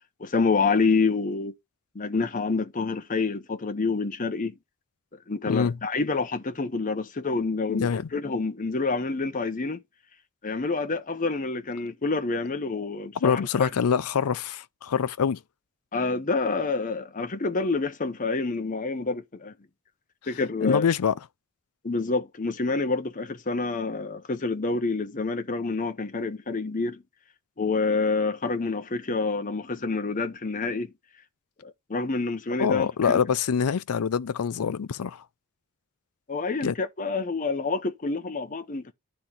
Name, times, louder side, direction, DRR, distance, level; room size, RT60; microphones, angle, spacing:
voice 1, 0.2-1.5 1.9-4.5 5.3-9.8 10.4-13.7 15.9-19.5 20.3-20.8 21.8-27.0 27.6-30.9 31.6-33.2 36.3-38.9, left 3 dB, 35° left, 0.8 m, -27 dB
voice 2, 5.5-5.8 7.7-8.1 13.2-15.4 20.6-21.1 32.6-35.2 36.6-36.7, left 6 dB, 80° left, 0.5 m, -25 dB
11.0 x 3.7 x 4.2 m
head